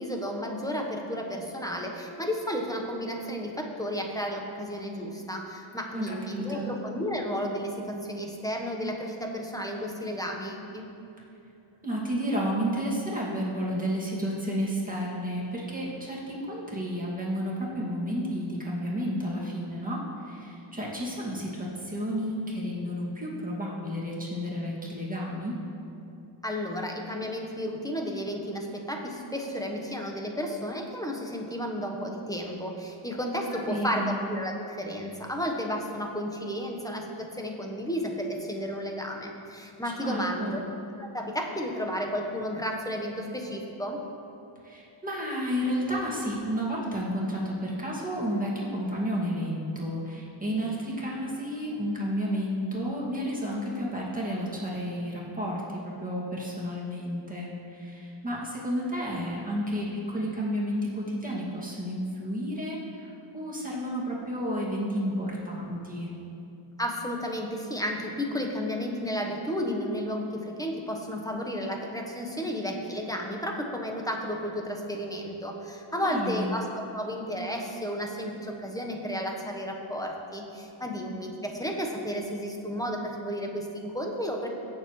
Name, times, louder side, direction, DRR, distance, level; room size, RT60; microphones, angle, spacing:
voice 1, 0.0-10.9 26.4-40.6 41.0-44.0 66.8-84.5, equal, 5° left, 1 dB, 1.1 m, -32 dB
voice 2, 5.9-6.7 11.8-25.6 33.5-34.1 39.8-40.6 44.6-66.1 75.9-76.5, equal, 15° right, -5 dB, 2.2 m, -31 dB
17.5 x 7.0 x 3.2 m, 2.8 s
wide cardioid pair, 100°, 50 cm